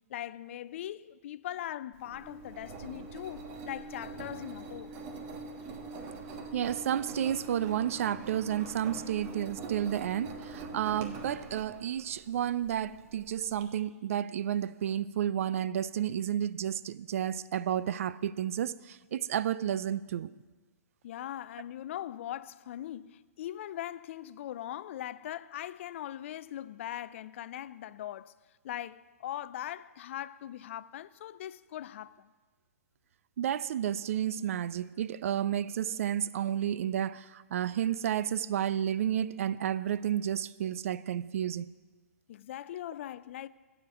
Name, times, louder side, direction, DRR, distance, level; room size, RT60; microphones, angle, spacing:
voice 1, 0.1-4.9 21.0-28.3 28.6-32.3 42.3-43.5, left 12 dB, 55° left, 0.3 m, -40 dB
Engine, 1.9-13.6, right 3 dB, 35° right, 1.4 m, -44 dB
voice 2, 6.5-20.3 33.4-41.7, right 10 dB, 60° right, 0.4 m, -31 dB
15.0 x 5.1 x 7.1 m
hypercardioid pair, 120°, 8 cm